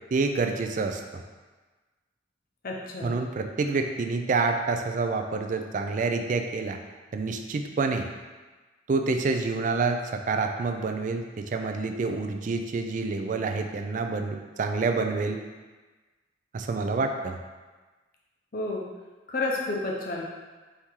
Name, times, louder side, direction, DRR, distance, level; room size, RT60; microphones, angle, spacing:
voice 1, 0.1-1.2 3.0-6.8 7.1-8.1 8.9-15.4 16.5-17.4, right 4 dB, 40° right, 5 dB, 0.3 m, -28 dB
voice 2, 2.6-3.2 18.5-18.8 19.3-20.2, left 2 dB, 45° left, -2 dB, 0.6 m, -30 dB
4.5 x 2.8 x 3.6 m, 1.3 s
head